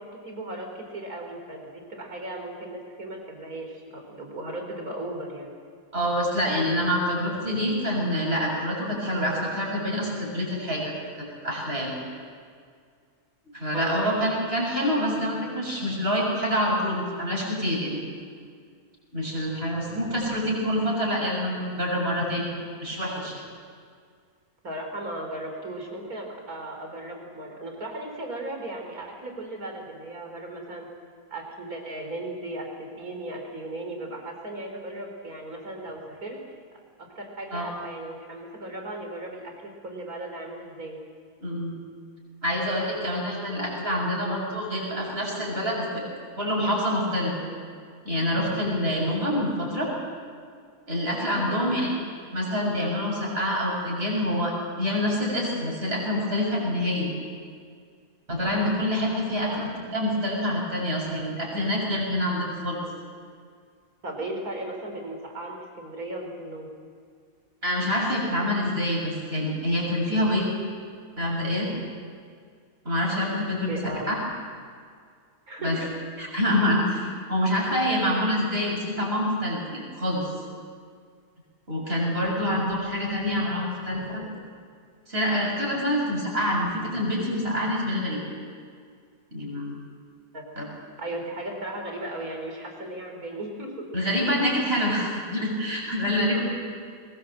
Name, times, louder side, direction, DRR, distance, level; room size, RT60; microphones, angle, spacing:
voice 1, 0.0-5.5 13.7-14.1 24.6-30.9 31.3-36.4 37.2-41.0 51.5-51.8 59.5-59.6 64.0-66.7 73.7-74.1 75.5-75.9 90.3-90.7 91.0-93.9, right 1 dB, 75° right, 2 dB, 4.4 m, -36 dB
voice 2, 5.9-10.9 11.4-12.0 13.5-18.0 19.1-22.5 22.8-23.4 37.5-37.7 41.4-41.7 42.4-46.0 46.4-47.3 48.0-49.9 50.9-51.9 52.3-57.1 58.3-62.8 67.6-70.5 71.2-71.7 72.8-74.2 75.6-75.8 76.2-80.3 81.7-84.3 85.1-88.2 89.3-89.8 90.6-90.7 93.9-96.4, equal, 40° right, -3 dB, 7.2 m, -26 dB
22.5 x 20.5 x 7.8 m, 2.1 s
omnidirectional pair, 1.6 m